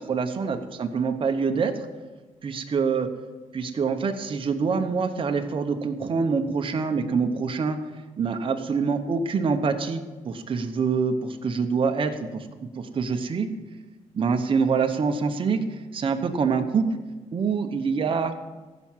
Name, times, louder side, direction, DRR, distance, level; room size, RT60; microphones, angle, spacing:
voice 1, 0.0-1.7 2.4-3.1 3.5-7.8 8.2-13.5 14.1-16.9 17.3-18.3, right 5 dB, 45° right, 5 dB, 1.0 m, -25 dB
15.0 x 6.1 x 7.4 m, 1.3 s
cardioid pair, 115°, 12 cm